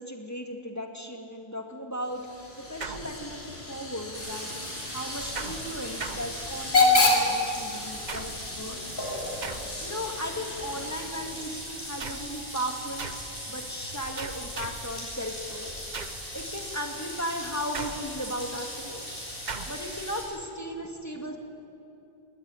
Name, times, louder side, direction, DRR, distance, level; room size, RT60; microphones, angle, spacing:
voice 1, 0.0-4.5 4.9-8.8 9.3-9.4 9.8-13.1 13.5-15.7 16.3-19.0 19.7-21.4, equal, 15° left, 3 dB, 2.1 m, -36 dB
Hiss / Train / Alarm, 2.0-11.7, left 3 dB, 80° left, 3.5 m, -30 dB
sound 1, 2.8-3.7 5.4-6.9 8.1-8.6 9.4-10.0 12.0-12.4 13.0-13.4 14.2-15.0 15.9-16.3 17.7-18.4 19.5-19.9, right 5 dB, 45° right, 1.0 m, -39 dB
sound 2, 4.1-20.2, equal, 60° left, 8.1 m, -38 dB
20.0 x 19.0 x 9.6 m, 2.7 s
omnidirectional pair, 1.0 m